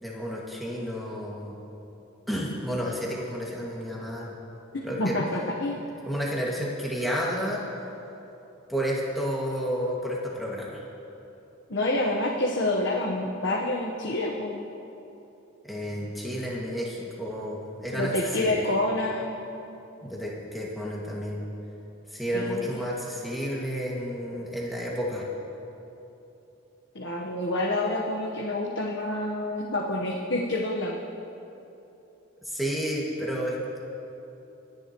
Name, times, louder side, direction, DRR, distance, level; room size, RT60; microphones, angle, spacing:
voice 1, 0.0-1.6 2.3-4.4 4.8-5.2 6.1-7.6 8.7-10.9 15.6-18.6 20.0-21.4 22.1-25.3 32.5-33.8, equal, ahead, -5 dB, 2.0 m, -31 dB
voice 2, 4.7-5.8 11.7-14.6 17.9-19.3 22.3-22.6 26.9-31.0, left 1 dB, 60° left, -2 dB, 1.1 m, -28 dB
29.0 x 10.5 x 3.0 m, 3.0 s
head